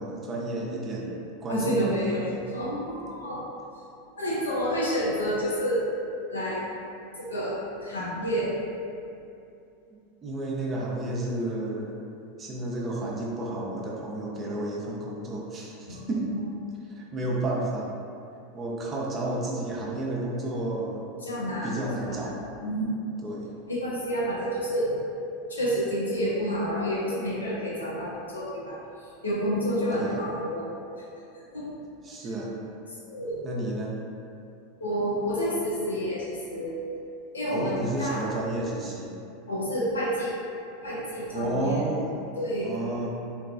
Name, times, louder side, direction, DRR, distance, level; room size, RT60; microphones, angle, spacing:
voice 1, 0.0-2.4 10.2-12.0 12.4-16.3 16.9-17.9 18.5-21.1 21.6-22.4 23.2-23.5 29.9-30.3 32.0-32.5 33.4-34.0 37.5-39.1 41.3-42.2 42.6-43.1, right 2 dB, 30° right, -4 dB, 0.5 m, -31 dB
voice 2, 1.5-2.2 2.5-3.4 4.2-5.8 6.3-6.6 7.2-7.6 7.8-8.5 21.3-21.7 22.1-22.2 22.6-23.0 23.7-24.9 25.5-28.5 29.2-30.6 33.0-33.4 34.8-36.2 36.5-36.8 37.3-38.3 39.5-40.3 40.8-41.7 42.4-42.7, equal, 85° left, -7 dB, 0.7 m, -28 dB
2.6 x 2.2 x 2.4 m, 2.6 s
hypercardioid pair, 85°, 0 cm